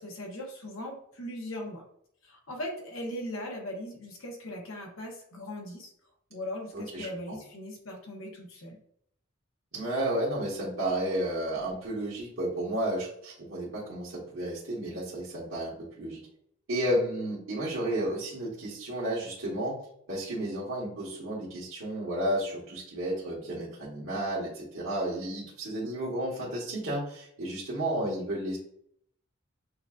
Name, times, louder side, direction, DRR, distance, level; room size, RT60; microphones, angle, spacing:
voice 1, 0.0-1.8 2.2-5.9 6.3-8.8, left 1 dB, 70° left, 0 dB, 1.1 m, -39 dB
voice 2, 6.7-7.4 9.7-16.2 16.7-19.8 20.1-28.6, right 1 dB, 65° right, -8 dB, 1.4 m, -32 dB
6.1 x 2.6 x 2.4 m, 0.68 s
head